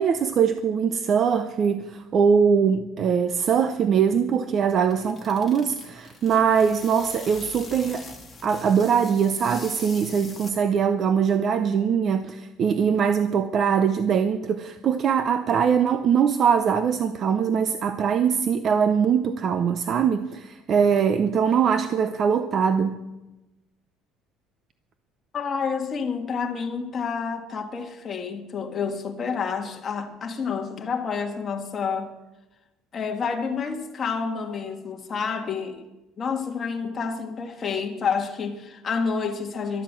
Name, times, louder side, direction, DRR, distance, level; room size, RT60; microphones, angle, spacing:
voice 1, 0.0-8.1 8.4-23.0, right 7 dB, 35° right, 0.7 m, -22 dB
sound 1, 4.5-10.9, left 3 dB, 10° left, 2.2 m, -43 dB
voice 2, 25.3-32.1 32.9-35.8 36.2-39.8, left 5 dB, 25° left, 1.8 m, -29 dB
13.0 x 12.0 x 7.6 m
cardioid pair, 165°, 0 cm